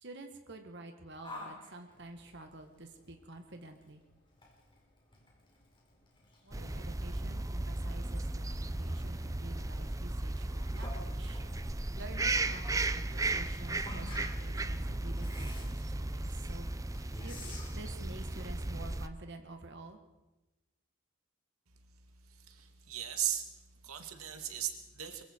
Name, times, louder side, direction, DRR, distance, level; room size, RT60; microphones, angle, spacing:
voice 1, 0.0-4.0 6.4-11.4 11.9-16.7 17.2-20.0, right 2 dB, 55° right, 5 dB, 1.9 m, -49 dB
Yell, 1.2-18.4, left 2 dB, 20° left, 4.7 m, -53 dB
sound 1, 6.5-19.1, right 2 dB, 15° right, 0.6 m, -35 dB
voice 2, 22.4-23.5 23.8-25.2, right 11 dB, 85° right, 6 dB, 2.3 m, -37 dB
24.0 x 23.5 x 4.7 m, 1.0 s
head